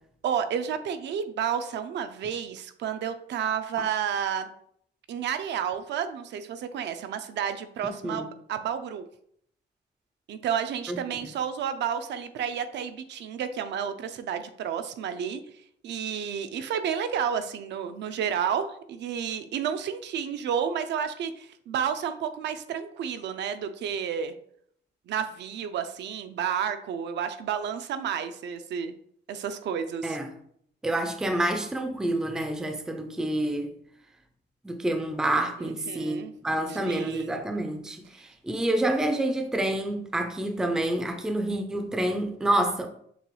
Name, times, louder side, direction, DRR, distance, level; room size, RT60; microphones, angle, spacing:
voice 1, 0.2-4.5 5.1-9.0 10.3-15.4 15.8-24.3 25.1-28.9 29.3-30.2 35.6-36.3 36.7-37.3, right 8 dB, 70° right, 0.4 m, -31 dB
voice 2, 30.8-33.7 34.6-42.9, right 1 dB, 5° right, 0.3 m, -28 dB
6.7 x 2.3 x 3.0 m
cardioid pair, 170°, 19 cm